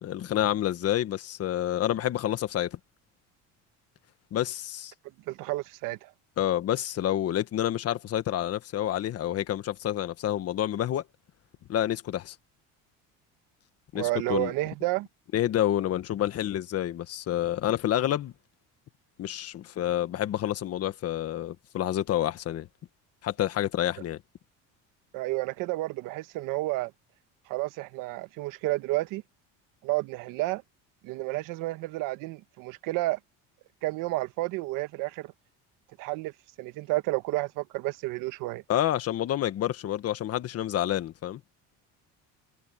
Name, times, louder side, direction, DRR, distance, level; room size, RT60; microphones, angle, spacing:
voice 1, 0.0-2.8 4.3-4.9 6.4-11.0 11.7-12.3 13.9-14.5 15.3-18.3 19.2-22.7 23.2-24.2 38.7-41.4, left 12 dB, 45° left, 1.5 m, -28 dB
voice 2, 5.3-6.1 13.9-15.1 25.1-26.9 27.5-29.2 29.8-30.6 31.0-33.2 33.8-35.3 36.0-36.3 36.6-38.6, right 19 dB, 75° right, 1.3 m, -31 dB
cardioid pair, 130°, 33 cm